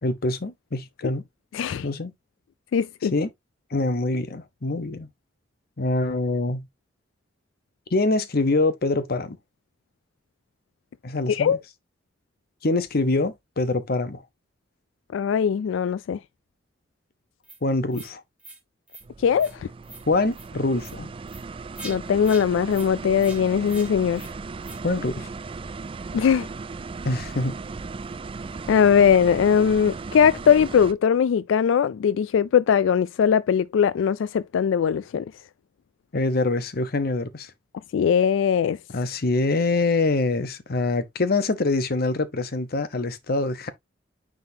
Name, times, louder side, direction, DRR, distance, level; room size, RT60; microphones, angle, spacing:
voice 1, 0.0-1.2 1.8-2.1 3.1-3.3 3.7-5.1 5.8-6.6 7.9-9.4 11.0-11.6 12.6-14.2 17.6-18.2 20.1-21.1 24.8-25.3 27.0-27.6 36.1-37.5 38.9-43.7, left 2 dB, 55° left, 0.9 m, -24 dB
voice 2, 1.5-1.9 2.7-3.1 11.3-11.6 15.1-16.2 19.2-19.7 21.8-24.3 26.1-26.5 28.7-35.3 37.9-38.8, left 7 dB, 90° left, 0.3 m, -20 dB
sound 1, 17.4-17.6 17.9-18.1 18.4-18.6 18.9-19.0 19.4-19.6 19.8-20.0 20.3-20.5 20.8-21.0 21.3-21.4 21.8-22.0 22.2-22.4 22.7-22.9 23.2-23.4 23.7-23.9 24.2-24.3 24.6-24.8, right 2 dB, 5° right, 1.7 m, -42 dB
sound 2, 19.0-30.9, right 4 dB, 30° right, 0.3 m, -37 dB
9.6 x 3.7 x 2.7 m
head